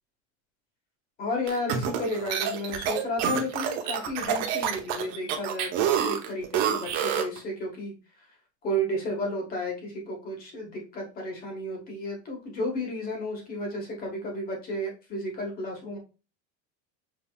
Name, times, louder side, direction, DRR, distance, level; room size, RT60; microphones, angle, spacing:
voice 1, 1.2-7.9 8.6-16.0, equal, 25° left, 1 dB, 1.3 m, -32 dB
sound 1, 1.5-7.4, right 9 dB, 55° right, 0.9 m, -28 dB
5.7 x 3.7 x 2.3 m, 0.31 s
cardioid pair, 175°, 32 cm